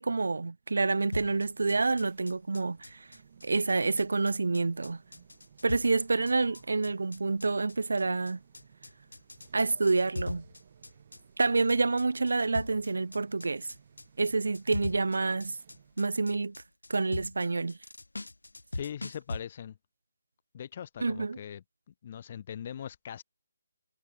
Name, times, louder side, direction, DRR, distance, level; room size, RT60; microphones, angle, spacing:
voice 1, 0.0-3.1 3.4-5.0 5.6-8.4 9.5-10.4 11.4-13.7 14.2-15.6 16.0-16.6 16.9-17.8 21.0-21.4, right 3 dB, 60° right, 0.4 m, -28 dB
sound 1, 0.6-16.2, right 7 dB, 35° right, 1.7 m, -59 dB
sound 2, 1.1-19.4, left 2 dB, 70° left, 0.4 m, -41 dB
voice 2, 18.7-19.8 20.5-23.2, left 9 dB, 35° left, 1.2 m, -41 dB
figure-of-eight pair, 145°, 0 cm